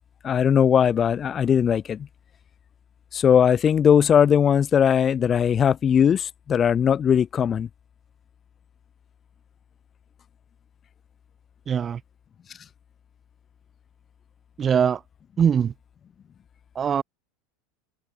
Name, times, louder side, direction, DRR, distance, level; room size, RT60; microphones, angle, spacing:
voice 1, 0.2-2.1 3.1-7.7, left 8 dB, 30° left, 3.5 m, -19 dB
voice 2, 11.7-12.0 14.6-15.0 15.4-15.7 16.7-17.0, right 7 dB, 25° right, 0.9 m, -21 dB
supercardioid pair, 130°, 0 cm